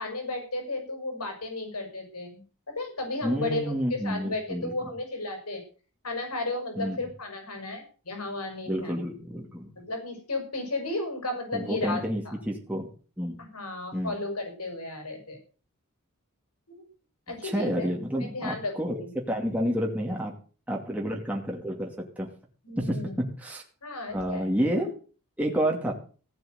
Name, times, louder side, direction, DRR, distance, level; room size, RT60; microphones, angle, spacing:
voice 1, 0.0-5.6 6.0-9.0 9.7-12.4 13.4-15.4 16.7-16.8 17.3-17.9 18.2-18.7 19.0-19.1 22.6-23.1 23.8-24.5, left 2 dB, 90° left, 5 dB, 6.5 m, -34 dB
voice 2, 3.2-4.7 6.8-7.0 8.7-9.7 11.5-12.9 13.2-13.4 13.9-14.1 17.4-20.3 20.7-22.3 22.8-23.6 24.1-25.0 25.4-25.9, equal, 5° right, -1 dB, 2.5 m, -29 dB
17.0 x 7.7 x 8.1 m, 0.39 s
head